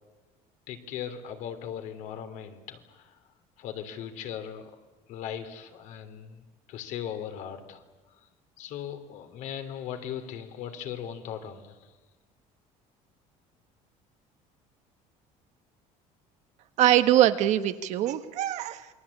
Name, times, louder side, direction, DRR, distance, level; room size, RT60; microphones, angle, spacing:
voice 1, 0.7-3.2 3.6-4.7 5.1-6.4 6.7-7.8 8.2-8.3 8.6-11.9, left 9 dB, 60° left, 8 dB, 3.2 m, -38 dB
voice 2, 16.8-18.9, right 13 dB, 55° right, 9 dB, 1.5 m, -23 dB
28.0 x 22.5 x 8.5 m, 1.3 s
cardioid pair, 170°, 14 cm